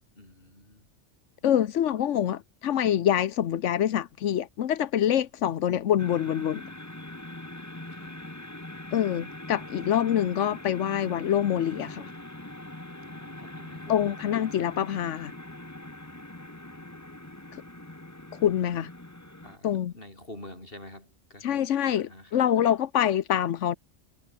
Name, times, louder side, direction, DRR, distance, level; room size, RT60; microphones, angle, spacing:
voice 1, 0.2-0.9 7.9-8.2 13.1-14.2 19.4-19.7 19.9-21.7 22.0-22.4, left 1 dB, 50° left, 7.5 m, -47 dB
voice 2, 1.4-6.7 8.9-12.1 13.9-15.3 17.5-17.6 18.3-18.9 19.6-19.9 21.4-23.7, left 10 dB, 90° left, 1.2 m, -25 dB
sound 1, 6.0-19.6, left 1 dB, 15° left, 1.8 m, -42 dB
omnidirectional pair, 1.2 m